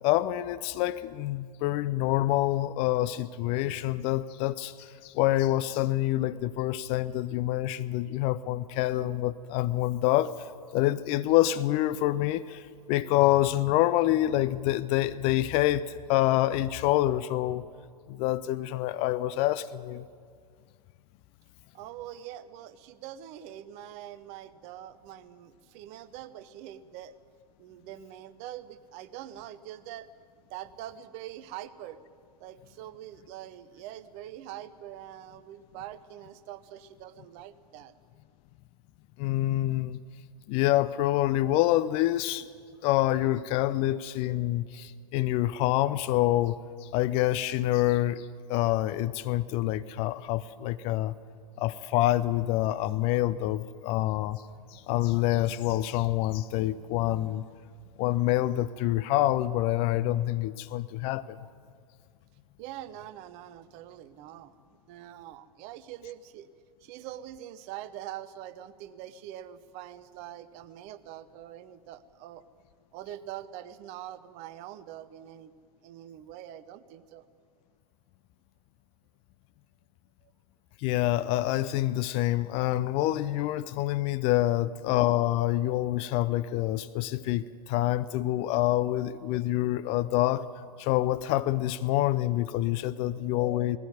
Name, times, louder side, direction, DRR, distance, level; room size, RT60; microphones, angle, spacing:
voice 1, 0.0-10.3 10.7-12.6 12.9-17.6 18.1-20.0 39.2-40.0 40.5-42.5 42.8-46.6 46.8-51.1 51.6-54.4 54.7-57.4 58.0-61.4 80.8-90.4 90.8-93.8, left 15 dB, 30° left, 13 dB, 0.5 m, -26 dB
voice 2, 21.7-27.1 27.6-30.1 30.5-32.0 32.4-37.9 62.6-64.6 64.9-66.5 66.8-72.4 72.9-75.5 75.8-77.2 80.2-80.3 84.5-84.7 92.8-93.6, right 12 dB, 35° right, 14 dB, 0.9 m, -44 dB
19.0 x 15.5 x 9.4 m, 2.1 s
figure-of-eight pair, 105°, 21 cm